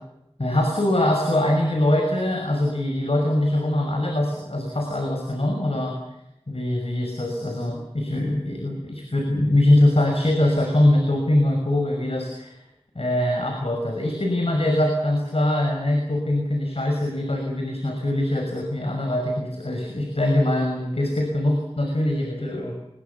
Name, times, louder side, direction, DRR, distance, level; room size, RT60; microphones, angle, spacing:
voice 1, 0.4-6.0 6.5-12.6 12.9-22.7, left 1 dB, 75° left, 2 dB, 6.0 m, -22 dB
27.0 x 22.0 x 7.1 m, 0.87 s
wide cardioid pair, 40°, 10 cm